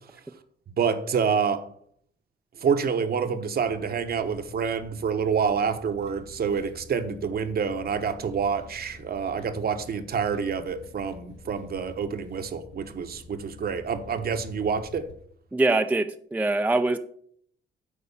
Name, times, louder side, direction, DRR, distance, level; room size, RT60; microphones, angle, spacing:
voice 1, 0.8-1.7 2.6-15.1, right 6 dB, 50° right, 1.0 m, -27 dB
sound 1, 3.6-15.1, left 3 dB, 60° left, 2.8 m, -48 dB
voice 2, 15.5-17.0, right 2 dB, 10° right, 0.5 m, -23 dB
8.4 x 4.7 x 7.0 m
cardioid pair, 90°, 20 cm